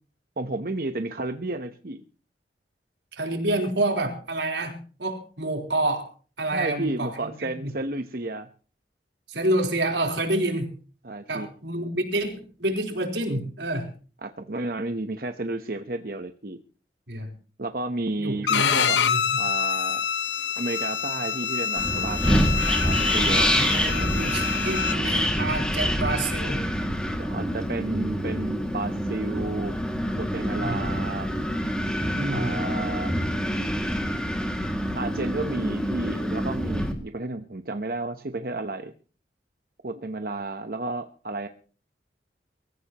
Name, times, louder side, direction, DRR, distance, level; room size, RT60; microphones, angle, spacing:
voice 1, 0.4-2.0 6.5-8.5 11.0-11.5 14.2-16.6 17.6-19.0 19.4-20.0 20.6-23.5 27.2-29.7 30.2-31.3 32.3-33.1 34.9-38.9 39.8-41.5, right 2 dB, 55° right, 7 dB, 1.0 m, -32 dB
voice 2, 3.1-6.1 6.4-7.7 9.3-10.7 11.3-13.9 17.1-17.3 18.2-19.2 23.6-26.7 30.6-30.8 32.1-32.5, right 1 dB, 85° right, 3 dB, 4.0 m, -28 dB
Bowed string instrument, 18.5-25.0, left 8 dB, 90° left, 0.9 m, -26 dB
Wind, 21.8-36.9, equal, 5° left, 2.3 m, -26 dB
24.0 x 14.5 x 3.0 m, 0.39 s
head